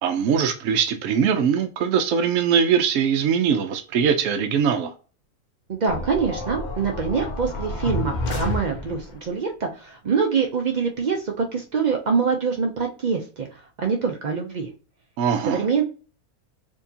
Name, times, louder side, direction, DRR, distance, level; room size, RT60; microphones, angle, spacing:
voice 1, 0.0-4.9 15.2-15.6, right 7 dB, 70° right, 0.8 m, -21 dB
voice 2, 5.7-14.7 15.5-15.8, right 5 dB, 85° right, 0.4 m, -25 dB
sound 1, 5.9-9.2, left 1 dB, 65° left, 0.4 m, -30 dB
4.5 x 2.8 x 2.7 m
omnidirectional pair, 1.6 m